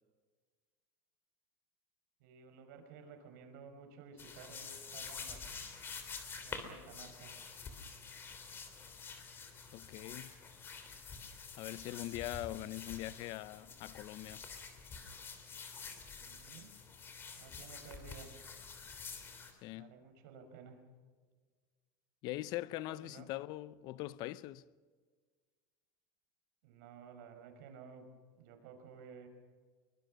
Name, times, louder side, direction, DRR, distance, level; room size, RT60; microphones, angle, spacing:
voice 1, 2.2-5.4 6.4-7.3 16.2-16.7 17.4-18.3 19.7-20.8 22.8-23.3 26.6-28.1 28.3-29.3, right 6 dB, 70° right, 5.2 m, -54 dB
sound 1, 4.2-19.5, left 5 dB, 20° left, 3.1 m, -48 dB
voice 2, 9.7-10.4 11.6-14.4 19.6-19.9 22.2-24.6, left 16 dB, 45° left, 0.7 m, -42 dB
23.0 x 23.0 x 6.4 m
supercardioid pair, 155°, 10 cm